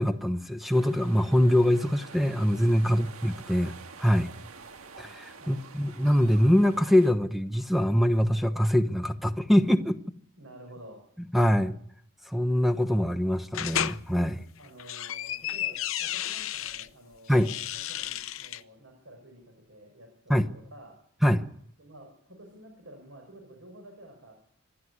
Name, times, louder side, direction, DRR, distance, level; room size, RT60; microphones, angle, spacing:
voice 1, 0.0-3.7 4.0-4.3 5.0-10.0 11.3-11.8 12.3-14.4 17.3-17.5 20.3-20.5 21.2-21.4, equal, ahead, 0.9 m, -23 dB
sound 1, 0.7-7.1, right 4 dB, 80° right, 1.7 m, -47 dB
voice 2, 10.4-11.1 14.6-20.1 20.5-21.0 21.8-24.3, right 1 dB, 65° right, 5.6 m, -50 dB
sound 2, 13.5-14.0 14.6-16.9 17.3-18.6, left 11 dB, 70° left, 0.8 m, -32 dB
26.0 x 11.5 x 9.6 m
head